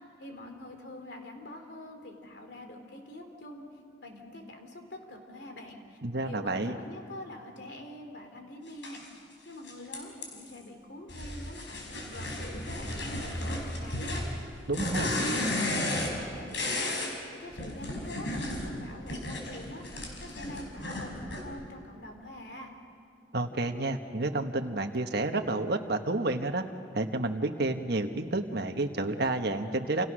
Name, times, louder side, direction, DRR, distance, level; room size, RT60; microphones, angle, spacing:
voice 1, 0.2-3.6 4.0-6.0 6.2-9.0 9.5-14.2 14.7-17.1 17.4-22.8, left 1 dB, 65° left, 4 dB, 3.6 m, -45 dB
voice 2, 6.0-6.8 14.7-15.1 23.3-26.6 26.9-30.1, right 2 dB, 60° right, 5 dB, 1.5 m, -30 dB
sound 1, 8.8-9.0 9.7-10.6 11.1-17.1 17.5-21.4, left 1 dB, 80° left, 5.0 m, -34 dB
29.5 x 28.5 x 6.4 m, 2.5 s
head